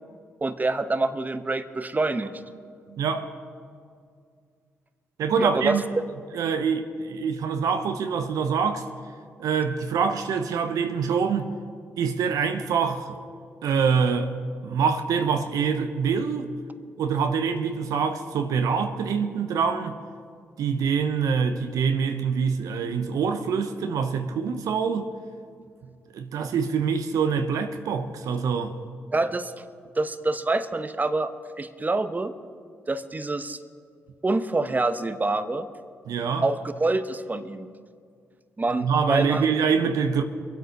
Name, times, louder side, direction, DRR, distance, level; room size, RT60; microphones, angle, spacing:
voice 1, 0.4-2.4 5.4-5.8 29.1-29.5 29.9-32.3 32.9-33.6 34.2-35.7 36.4-37.7 38.6-39.4, right 2 dB, 25° right, 0.9 m, -26 dB
voice 2, 2.9-3.4 5.2-5.8 6.3-8.9 9.4-11.5 12.0-13.2 13.6-14.3 14.6-16.5 17.0-20.0 20.6-25.1 26.1-28.7 36.1-36.5 38.8-40.2, right 6 dB, 75° right, 0.8 m, -25 dB
23.5 x 8.2 x 5.2 m
hypercardioid pair, 45°, 6 cm